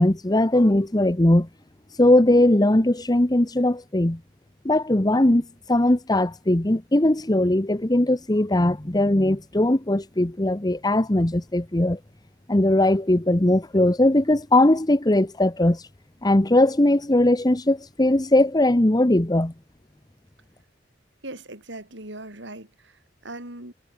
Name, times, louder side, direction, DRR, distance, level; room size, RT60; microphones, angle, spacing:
voice 1, 0.0-1.5 2.0-4.2 4.6-12.0 12.5-15.8 16.2-19.5, left 1 dB, 20° left, 1.0 m, -20 dB
voice 2, 21.2-22.7 23.2-23.7, right 2 dB, 65° right, 6.2 m, -38 dB
head